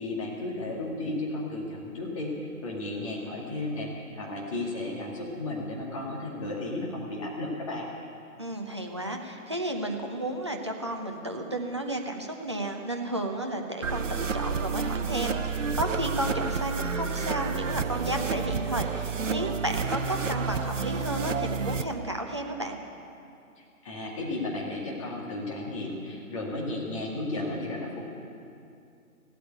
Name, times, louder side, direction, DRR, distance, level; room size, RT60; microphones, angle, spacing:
voice 1, 0.0-7.9 23.6-28.0, left 2 dB, 20° left, -3 dB, 2.2 m, -34 dB
voice 2, 8.4-22.8, right 1 dB, 20° right, 2 dB, 0.7 m, -32 dB
sound 1, 13.8-21.8, right 5 dB, 60° right, 0.8 m, -30 dB
17.0 x 8.4 x 9.4 m, 2.5 s
figure-of-eight pair, 150°, 44 cm